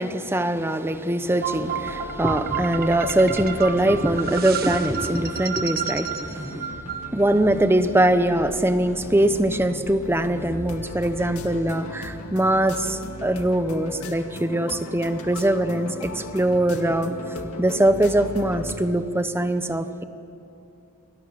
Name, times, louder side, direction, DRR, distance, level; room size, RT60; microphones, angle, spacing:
voice 1, 0.0-6.7 7.1-17.2 17.6-20.0, right 1 dB, 10° right, 10 dB, 0.9 m, -22 dB
sound 1, 1.4-7.5, right 7 dB, 45° right, 1.6 m, -31 dB
sound 2, 1.5-18.7, left 2 dB, 80° left, 2.1 m, -38 dB
28.0 x 20.5 x 7.6 m, 2.6 s
head